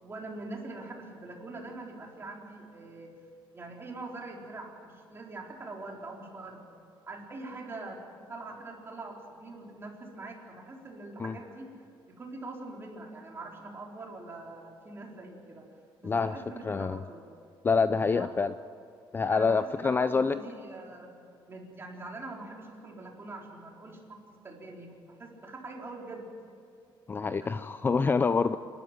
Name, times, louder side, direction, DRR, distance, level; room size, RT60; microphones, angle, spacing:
voice 1, 0.0-3.1 3.5-6.7 7.1-8.0 8.3-11.7 12.1-15.6 16.0-17.2 18.1-18.3 19.3-21.1 21.5-24.2 24.4-26.3 27.4-27.5, right 2 dB, 25° right, -1 dB, 4.0 m, -43 dB
voice 2, 16.0-16.3 16.6-17.0 17.6-18.5 19.1-20.4 27.1-28.6, left 4 dB, 25° left, 12 dB, 0.4 m, -26 dB
27.5 x 12.5 x 9.0 m, 2.4 s
cardioid pair, 140°, 9 cm